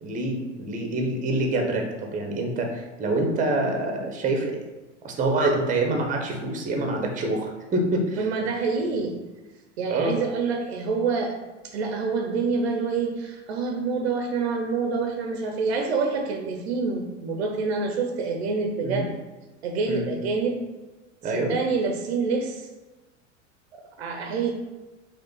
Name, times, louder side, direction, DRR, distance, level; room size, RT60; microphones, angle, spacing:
voice 1, 0.0-4.6 5.0-8.2 9.9-10.1 18.8-19.1 19.9-20.0 21.2-21.5, right 2 dB, 20° right, 2 dB, 0.8 m, -26 dB
voice 2, 8.2-9.1 9.8-11.4 11.6-19.1 19.6-20.6 21.3-22.7 23.7-24.5, right 4 dB, 60° right, 3 dB, 0.7 m, -27 dB
4.8 x 2.5 x 3.8 m, 1.2 s
figure-of-eight pair, 80°, 37 cm